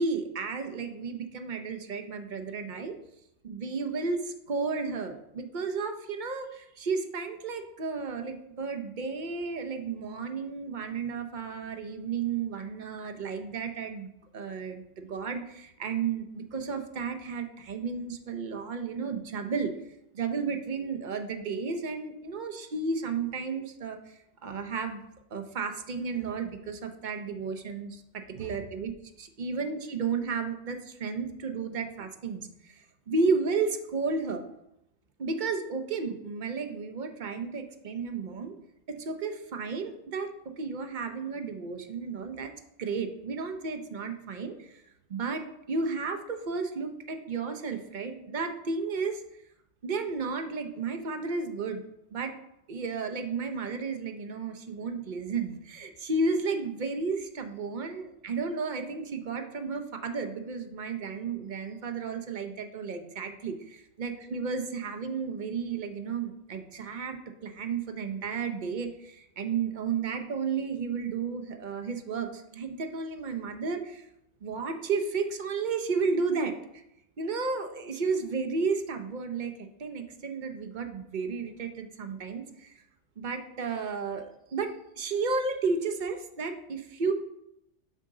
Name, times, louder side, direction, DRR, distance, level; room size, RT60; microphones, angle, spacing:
voice 1, 0.0-2.9 3.4-19.7 20.1-24.0 24.4-25.0 25.3-28.0 28.3-28.9 29.2-34.4 35.2-38.5 38.9-40.3 40.6-42.5 42.8-44.8 45.1-49.2 49.8-51.8 52.1-52.3 52.7-74.1 74.4-76.5 77.2-82.7 83.2-87.1, right 4 dB, 45° right, 6 dB, 0.7 m, -33 dB
7.6 x 5.1 x 3.7 m, 0.81 s
omnidirectional pair, 1.3 m